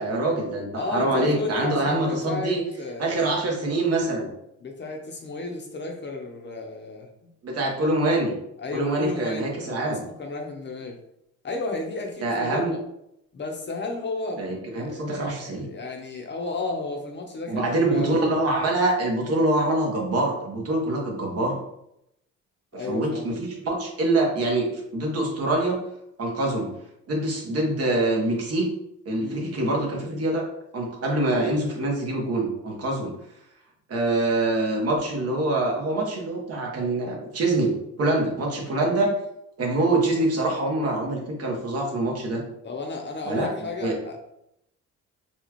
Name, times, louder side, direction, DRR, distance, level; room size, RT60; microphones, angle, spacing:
voice 1, 0.0-2.6 3.0-4.3 7.4-8.3 8.7-10.0 12.2-12.7 14.4-15.7 17.5-21.6 22.9-25.8 26.2-26.7 27.1-28.7 29.0-30.5 30.7-33.1 33.9-39.1 39.6-42.4 43.3-43.5 43.8-43.9, right 2 dB, 55° right, 0 dB, 1.2 m, -25 dB
voice 2, 0.7-3.3 4.6-7.3 8.6-11.0 11.4-12.8 13.3-18.2 22.8-23.3 29.1-29.5 42.6-44.2, left 3 dB, 35° left, 1 dB, 0.7 m, -33 dB
4.1 x 2.4 x 3.0 m, 0.79 s
cardioid pair, 90°, 30 cm